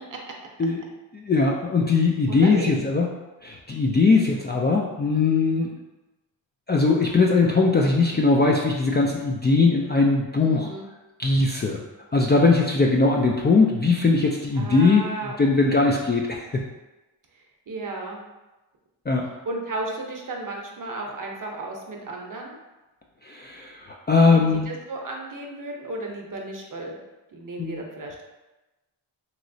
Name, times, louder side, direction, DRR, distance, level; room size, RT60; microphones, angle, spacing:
voice 1, 1.1-3.1 3.4-5.8 6.7-10.7 11.2-11.8 12.1-16.6 19.1-19.3 23.2-24.7 27.6-27.8, left 3 dB, 25° left, -1 dB, 0.3 m, -20 dB
voice 2, 2.3-2.7 10.4-10.9 14.6-15.4 15.7-16.0 17.7-18.2 19.5-22.6 24.3-27.0 27.3-28.2, right 2 dB, 45° right, 0 dB, 0.8 m, -34 dB
3.0 x 2.9 x 2.6 m, 1.1 s
cardioid pair, 55°, 46 cm